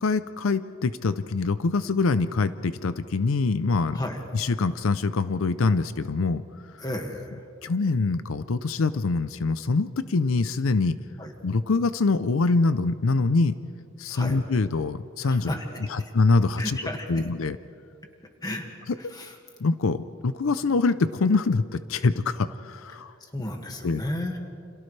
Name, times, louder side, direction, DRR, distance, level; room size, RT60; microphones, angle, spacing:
voice 1, 0.0-4.0 4.3-6.4 7.6-11.0 11.4-13.5 14.0-15.5 15.9-16.8 17.1-17.6 19.6-23.1 23.8-24.0, left 3 dB, 85° left, 13 dB, 0.6 m, -24 dB
voice 2, 3.9-4.3 6.8-7.4 11.2-11.3 14.1-14.4 15.3-16.1 16.6-17.3 18.4-19.4 23.2-24.4, left 1 dB, 20° left, 2 dB, 1.9 m, -34 dB
29.5 x 27.5 x 3.3 m, 2.5 s
head